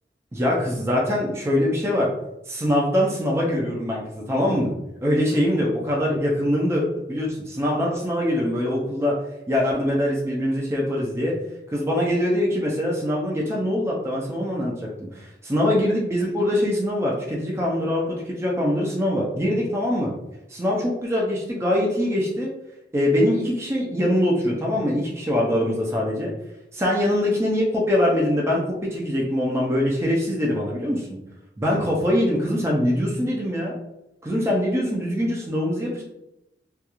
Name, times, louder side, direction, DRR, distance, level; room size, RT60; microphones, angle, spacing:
voice 1, 0.3-2.1 2.5-4.7 5.0-9.2 9.5-11.3 11.7-14.9 15.2-20.1 20.5-22.5 22.9-26.3 26.7-31.2 31.6-33.7 34.2-36.0, left 1 dB, 15° right, -3 dB, 0.4 m, -23 dB
2.3 x 2.3 x 2.9 m, 0.89 s
head